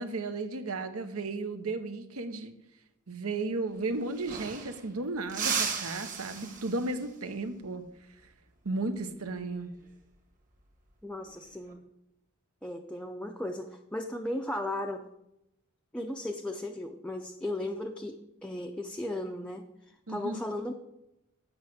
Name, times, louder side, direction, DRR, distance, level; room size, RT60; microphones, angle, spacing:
voice 1, 0.0-2.5 3.1-7.8 8.6-9.7 20.1-20.4, right 3 dB, 80° right, 9 dB, 1.0 m, -34 dB
sound 1, 3.7-3.8 4.0-4.9 5.3-7.1 9.6-9.8 11.3-11.7, right 6 dB, 40° right, 1.5 m, -35 dB
voice 2, 11.0-11.8 12.6-15.1 15.9-19.7 20.1-20.7, left 1 dB, 5° left, 2 dB, 0.5 m, -36 dB
7.9 x 6.3 x 7.8 m, 0.87 s
head